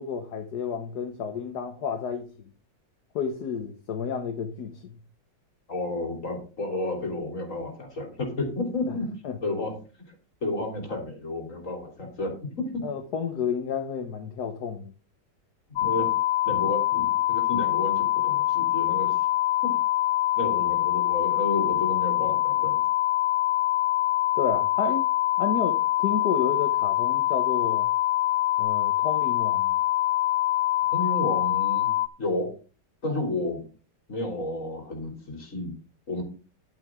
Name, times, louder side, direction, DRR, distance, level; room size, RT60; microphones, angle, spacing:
voice 1, 0.0-2.3 3.1-5.0 9.2-9.4 12.8-14.9 24.4-25.0 25.4-27.9 28.6-29.8, left 6 dB, 65° left, 1.6 m, -31 dB
voice 2, 5.7-9.1 9.4-9.8 10.4-12.8 15.8-16.1 16.4-19.1 19.6-19.7 20.4-22.8 30.9-31.9 32.2-32.5 33.0-33.6 34.1-35.7 36.1-36.2, left 2 dB, 45° left, 3.7 m, -31 dB
sound 1, 15.8-32.1, left 14 dB, 80° left, 1.3 m, -24 dB
11.0 x 8.8 x 3.7 m
omnidirectional pair, 1.9 m